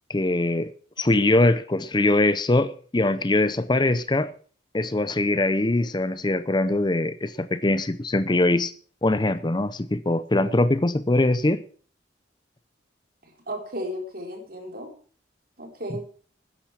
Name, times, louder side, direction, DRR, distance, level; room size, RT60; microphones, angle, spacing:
voice 1, 0.1-0.7 1.0-4.3 4.7-8.7 9.0-11.6, left 2 dB, 25° left, 0.6 m, -22 dB
voice 2, 13.5-14.9 15.6-16.1, equal, 50° right, 3.8 m, -34 dB
12.5 x 10.5 x 5.9 m
head